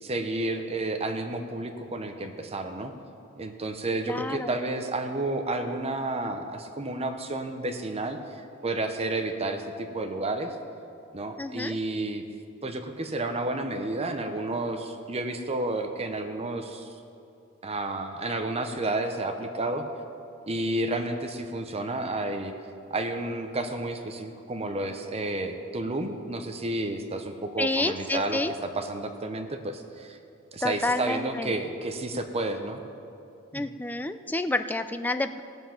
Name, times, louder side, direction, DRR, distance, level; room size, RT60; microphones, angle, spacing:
voice 1, 0.0-2.9 3.4-10.6 11.1-12.2 12.6-16.9 17.6-19.8 20.5-22.5 22.9-30.2 30.5-32.8 33.5-33.6, right 2 dB, 30° right, 6 dB, 0.7 m, -31 dB
voice 2, 4.1-4.6 11.4-11.7 27.6-28.5 30.6-31.5 33.5-35.4, left 2 dB, 10° left, 10 dB, 0.4 m, -29 dB
17.5 x 7.4 x 5.9 m, 2.7 s
head